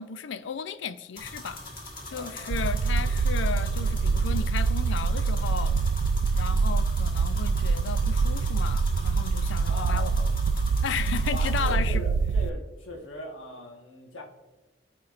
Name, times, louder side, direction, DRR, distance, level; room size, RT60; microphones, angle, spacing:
voice 1, 0.0-1.6 2.1-5.8 6.3-10.1 10.8-12.0, left 6 dB, 70° left, 0.4 m, -34 dB
sound 1, 1.1-11.7, left 2 dB, 45° left, 1.6 m, -42 dB
voice 2, 2.1-2.6 9.6-10.3 11.3-14.2, left 2 dB, 85° left, 1.4 m, -40 dB
sound 2, 2.5-12.5, right 4 dB, 75° right, 0.3 m, -25 dB
13.5 x 4.5 x 2.5 m
head